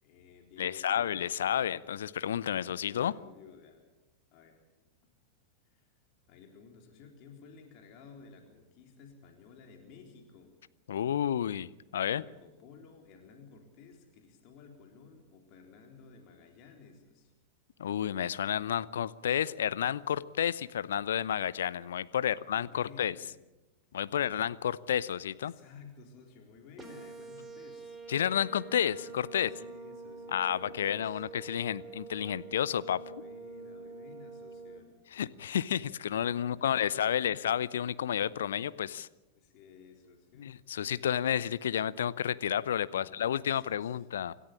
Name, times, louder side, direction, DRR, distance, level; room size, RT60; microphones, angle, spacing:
voice 1, 0.0-1.1 2.8-3.8 4.3-4.6 5.6-5.9 6.3-10.5 12.1-17.3 22.2-23.4 25.4-28.0 29.3-31.2 33.0-34.9 36.4-37.4 39.3-40.5 42.9-44.0, left 5 dB, 40° left, 3 dB, 4.0 m, -55 dB
voice 2, 0.6-3.1 10.9-12.2 17.8-23.1 23.9-25.5 28.1-29.5 30.3-33.2 35.1-39.1 40.4-44.3, left 9 dB, 65° left, 18 dB, 0.7 m, -31 dB
sound 1, 26.8-34.8, right 4 dB, 10° right, 4.1 m, -46 dB
27.0 x 14.0 x 8.6 m, 1.0 s
figure-of-eight pair, 90°, 0 cm